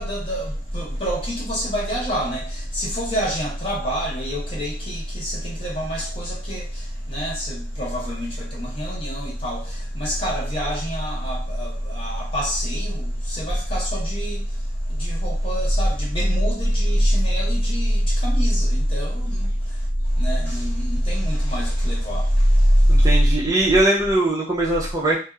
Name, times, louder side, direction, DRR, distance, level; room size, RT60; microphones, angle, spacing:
voice 1, 0.0-23.1, equal, 30° left, 0.8 m, -23 dB
voice 2, 22.9-25.2, right 2 dB, 20° right, 0.4 m, -20 dB
2.7 x 2.0 x 2.3 m
head